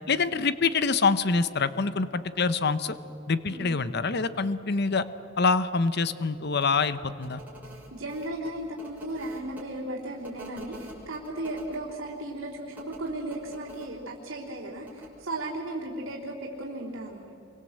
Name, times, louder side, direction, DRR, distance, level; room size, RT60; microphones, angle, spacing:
voice 1, 0.1-2.9 3.3-5.0 5.4-7.4, left 4 dB, 55° left, 13 dB, 0.9 m, -25 dB
voice 2, 3.5-3.8 7.7-10.7 11.1-17.3, right 1 dB, 70° right, -5 dB, 3.5 m, -35 dB
sound 1, 6.6-6.7 7.2-9.6 10.2-11.8 12.7-13.9 14.8-15.1, right 1 dB, 10° right, 5.6 m, -47 dB
28.0 x 24.0 x 8.0 m, 2.7 s
head